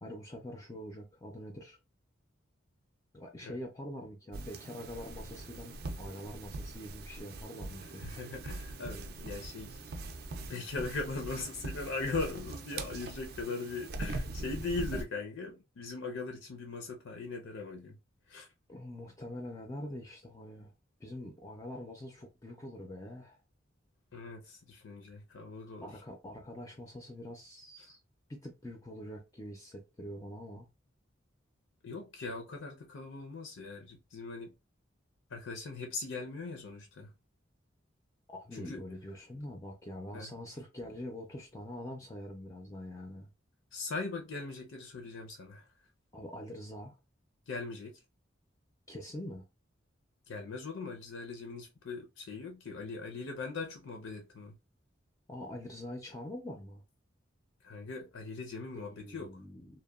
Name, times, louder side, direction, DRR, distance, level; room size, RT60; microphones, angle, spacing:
voice 1, 0.0-1.8 3.1-8.0 18.7-20.7 21.0-23.4 25.8-28.0 28.3-30.7 38.3-43.3 46.1-47.0 48.9-49.4 55.3-56.8 58.7-59.8, left 1 dB, 15° left, 0.4 m, -44 dB
sound 1, 4.3-15.1, right 2 dB, 55° right, 0.4 m, -42 dB
voice 2, 7.8-9.9 10.4-18.0 18.3-18.5 24.1-25.9 31.8-34.5 35.3-37.1 38.5-38.8 40.1-40.3 43.7-45.7 47.5-48.0 50.3-54.6 57.6-59.4, left 3 dB, 90° left, 0.5 m, -40 dB
2.8 x 2.1 x 2.3 m
head